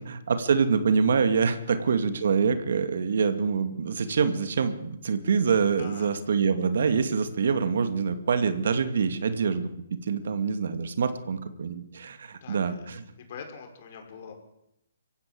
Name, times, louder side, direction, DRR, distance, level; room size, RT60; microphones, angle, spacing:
voice 1, 0.0-9.7 10.1-13.0, right 5 dB, 65° right, 10 dB, 2.3 m, -25 dB
voice 2, 5.8-6.1 12.3-12.8 13.2-14.3, left 6 dB, 45° left, 4 dB, 6.0 m, -43 dB
25.0 x 15.5 x 7.9 m, 0.80 s
hypercardioid pair, 155°, 0 cm